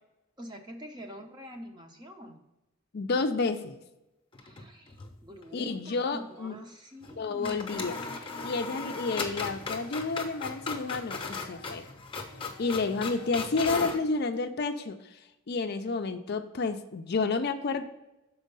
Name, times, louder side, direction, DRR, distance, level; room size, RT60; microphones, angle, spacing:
voice 1, 0.4-2.4 4.4-7.6, equal, 20° right, 4 dB, 0.8 m, -45 dB
voice 2, 2.9-3.8 5.5-6.6 7.2-11.8 12.6-15.2 15.5-17.8, left 4 dB, 50° left, 7 dB, 0.4 m, -30 dB
sound 1, 4.3-5.1 5.4-5.5 7.0-7.2 7.4-14.0, left 4 dB, 25° left, 0.8 m, -37 dB
6.3 x 4.4 x 5.3 m, 0.94 s
head